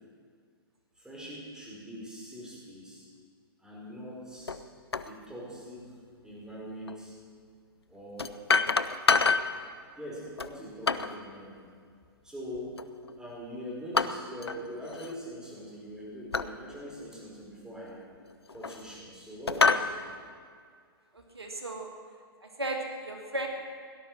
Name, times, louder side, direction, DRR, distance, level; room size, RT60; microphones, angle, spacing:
voice 1, 1.0-3.1 3.6-4.6 5.0-6.0 6.2-7.1 7.9-8.4 10.0-11.7 12.2-12.8 13.2-18.0 18.5-20.0, equal, 5° right, -4 dB, 5.0 m, -42 dB
sound 1, 4.5-4.6 4.9-5.1 6.9-7.0 8.2-9.6 10.4-11.2 12.8-13.2 13.9-14.6 14.9-15.1 16.3-16.5 17.1-17.2 18.2-19.0 19.5-19.9, left 4 dB, 90° left, 0.7 m, -27 dB
voice 2, 21.1-21.9 22.4-23.5, right 2 dB, 90° right, 2 dB, 2.3 m, -35 dB
17.5 x 11.5 x 6.3 m, 2.1 s
figure-of-eight pair, 115°, 13 cm